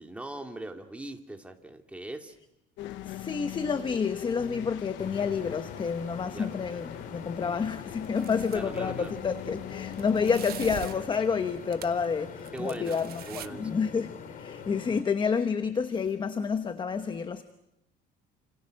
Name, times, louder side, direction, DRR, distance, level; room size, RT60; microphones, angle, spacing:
voice 1, 0.0-2.3 6.3-6.6 8.5-9.2 12.5-13.0 13.3-13.8, right 2 dB, 5° right, 4 dB, 2.3 m, -40 dB
sound 1, 2.8-11.0, left 15 dB, 80° left, 1.1 m, -41 dB
voice 2, 3.1-17.4, left 5 dB, 25° left, 10 dB, 1.1 m, -29 dB
sound 2, 5.0-15.0, left 6 dB, 45° left, 3.0 m, -44 dB
sound 3, 8.0-8.8 9.9-12.1 12.4-13.5, right 12 dB, 55° right, 1.2 m, -42 dB
29.5 x 27.5 x 6.5 m, 0.85 s
cardioid pair, 145°, 19 cm